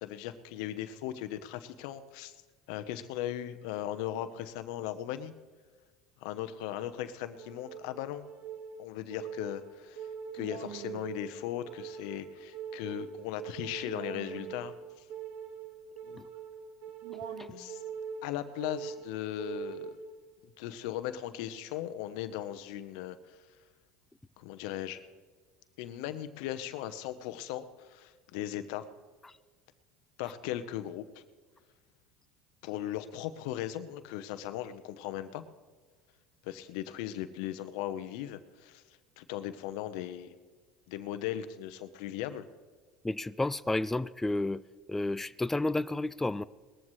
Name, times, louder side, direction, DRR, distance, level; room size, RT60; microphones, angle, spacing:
voice 1, 0.0-2.3 2.7-5.3 6.2-8.2 8.8-10.1 10.3-14.7 16.0-16.2 17.5-17.8 18.2-19.9 20.6-23.4 24.4-25.0 25.8-28.8 30.2-31.2 32.6-35.4 36.4-38.8 39.2-40.3 40.9-42.4, left 12 dB, 75° left, 0.9 m, -38 dB
sound 1, 7.4-20.4, right 6 dB, 70° right, 1.7 m, -43 dB
voice 2, 43.0-44.6 44.9-46.4, left 2 dB, 10° left, 0.3 m, -31 dB
20.0 x 14.0 x 3.2 m
supercardioid pair, 95°, 4 cm